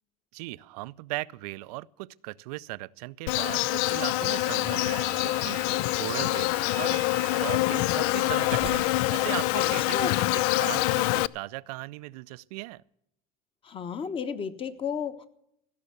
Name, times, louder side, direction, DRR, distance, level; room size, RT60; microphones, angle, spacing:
voice 1, 0.3-7.0 7.3-12.8, right 20 dB, 85° right, 0.5 m, -38 dB
Insect, 3.3-11.3, left 18 dB, 70° left, 0.4 m, -26 dB
sound 1, 4.2-10.0, right 9 dB, 30° right, 0.7 m, -45 dB
voice 2, 9.5-10.4 13.6-15.3, left 6 dB, 30° left, 1.1 m, -34 dB
15.5 x 6.6 x 8.5 m
supercardioid pair, 130°, 19 cm